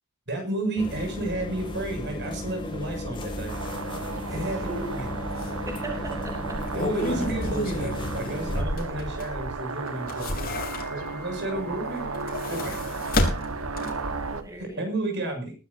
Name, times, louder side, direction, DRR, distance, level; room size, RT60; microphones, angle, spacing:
voice 1, 0.3-3.5 4.3-5.1 6.7-10.3 10.9-12.0 12.5-12.8 13.5-13.9 14.6-15.5, right 2 dB, 55° right, 5 dB, 6.7 m, -31 dB
sound 1, 0.8-8.6, left 1 dB, 25° left, 2.5 m, -34 dB
sound 2, 3.5-14.4, right 3 dB, 80° right, 1.6 m, -34 dB
voice 2, 4.2-4.9 5.6-6.6 14.3-14.8, right 2 dB, 15° right, 1 dB, 2.9 m, -38 dB
sound 3, 4.8-5.0 5.4-5.5 6.4-9.5 9.9-11.2 12.0-14.2 14.5-14.6, left 2 dB, 45° left, 3.6 m, -31 dB
21.0 x 12.5 x 2.8 m, 0.33 s
head